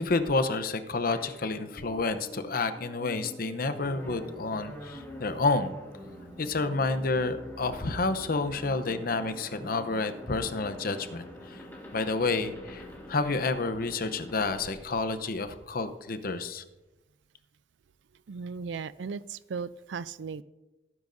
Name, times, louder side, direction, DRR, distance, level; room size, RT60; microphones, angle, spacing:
voice 1, 0.0-5.7 6.4-11.6 11.9-12.8 13.1-16.6, left 3 dB, 55° left, 11 dB, 0.8 m, -29 dB
sound 1, 1.1-15.9, left 1 dB, 10° left, 2.2 m, -46 dB
sound 2, 3.5-8.7, right 1 dB, 35° right, 1.6 m, -52 dB
voice 2, 18.3-20.4, right 5 dB, 75° right, 17 dB, 0.4 m, -36 dB
17.0 x 9.7 x 2.6 m, 1.1 s
head